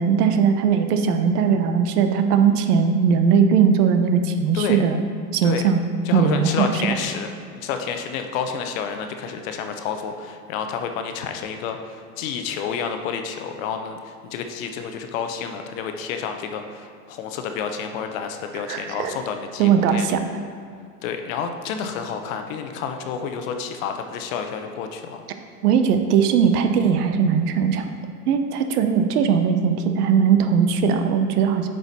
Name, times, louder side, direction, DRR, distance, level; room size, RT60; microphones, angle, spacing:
voice 1, 0.0-5.0 5.3-5.8 6.1-7.0 18.7-19.1 19.6-20.2 25.6-27.9 28.3-31.7, right 7 dB, 70° right, 7 dB, 0.9 m, -19 dB
voice 2, 6.0-7.3 7.5-20.1 21.0-25.2, left 6 dB, 60° left, 6 dB, 0.9 m, -29 dB
8.4 x 4.9 x 4.2 m, 2.3 s
supercardioid pair, 130°, 47 cm